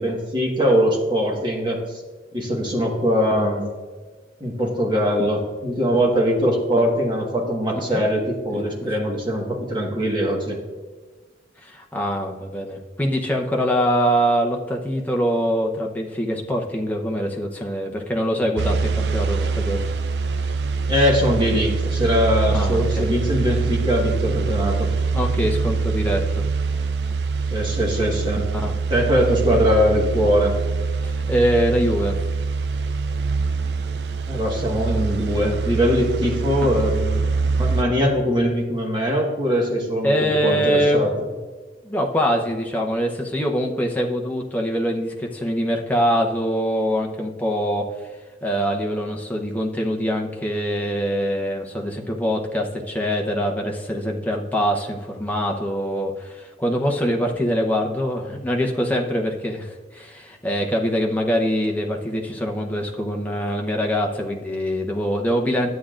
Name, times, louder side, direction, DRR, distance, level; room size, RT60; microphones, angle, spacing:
voice 1, 0.0-2.0 2.3-3.7 4.4-10.6 20.9-24.9 27.5-28.5 28.9-30.6 34.3-41.1, equal, 25° right, -1 dB, 1.5 m, -21 dB
voice 2, 11.6-19.9 22.5-23.1 25.1-26.5 28.5-28.7 31.0-32.2 36.6-36.7 40.0-41.0 41.8-47.9 48.4-65.7, equal, 10° left, 0 dB, 0.8 m, -24 dB
sound 1, 18.6-37.8, right 4 dB, 70° right, 0.5 m, -24 dB
12.0 x 8.5 x 2.5 m, 1.4 s
head